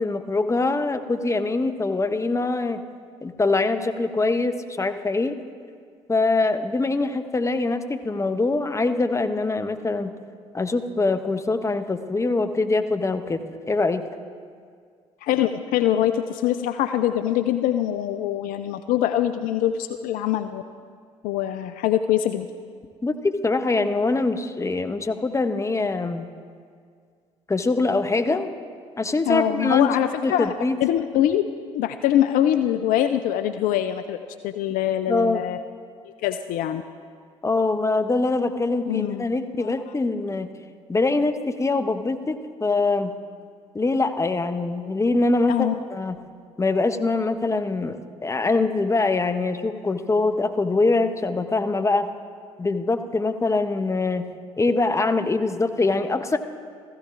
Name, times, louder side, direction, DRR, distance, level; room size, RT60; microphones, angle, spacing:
voice 1, 0.0-2.8 3.2-5.4 6.1-10.1 10.5-13.4 13.7-14.0 23.0-26.3 27.5-28.5 29.0-29.9 30.2-30.8 35.1-35.4 37.4-40.5 40.9-43.1 43.7-46.2 46.6-52.1 52.6-54.3 54.6-56.4, left 3 dB, 20° left, 9 dB, 0.8 m, -23 dB
voice 2, 15.2-20.6 21.2-22.5 29.3-30.5 30.8-31.5 31.7-34.2 34.4-35.6 36.2-36.8 38.9-39.2 39.6-39.7 45.5-45.8, left 11 dB, 60° left, 10 dB, 0.4 m, -23 dB
15.5 x 15.0 x 2.5 m, 2.1 s
hypercardioid pair, 50°, 16 cm